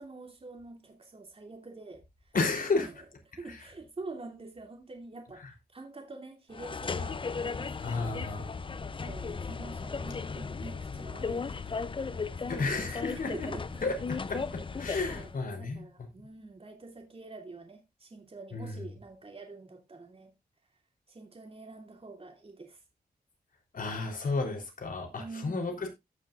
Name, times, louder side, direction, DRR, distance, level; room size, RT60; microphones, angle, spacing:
voice 1, 0.0-2.3 2.7-2.9 3.4-5.4 5.7-8.2 9.0-13.8 15.1-20.3 21.1-22.8 25.2-25.7, right 3 dB, 35° right, 2.8 m, -46 dB
voice 2, 2.3-2.9 3.5-3.6 7.8-8.5 12.5-13.5 13.8-15.8 18.5-18.9 23.7-25.9, left 3 dB, 60° left, 3.7 m, -32 dB
sound 1, 6.5-15.4, left 4 dB, 30° left, 0.6 m, -36 dB
17.0 x 6.4 x 2.5 m
cardioid pair, 85°, 16 cm